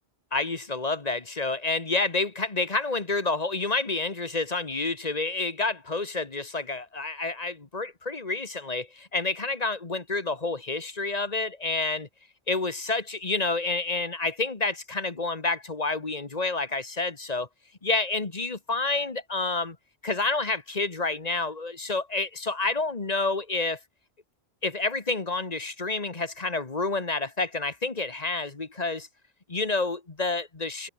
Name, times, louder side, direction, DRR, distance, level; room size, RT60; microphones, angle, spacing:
voice 1, 0.3-12.1 12.5-17.5 17.8-19.8 20.0-23.8 24.6-29.1 29.5-30.9, left 3 dB, 40° left, 1.7 m, -29 dB
omnidirectional pair, 1.1 m